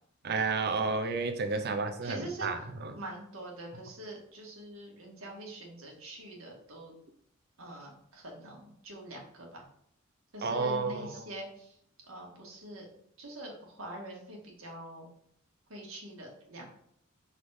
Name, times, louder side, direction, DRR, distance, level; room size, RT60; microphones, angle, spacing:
voice 1, 0.2-2.9 10.4-11.2, right 4 dB, 50° right, 0.8 m, -31 dB
voice 2, 1.6-2.7 3.0-6.9 7.6-9.6 10.3-11.8 12.1-12.9 13.2-15.1 15.7-16.8, right 1 dB, 70° right, 1.9 m, -44 dB
5.6 x 4.1 x 4.9 m
head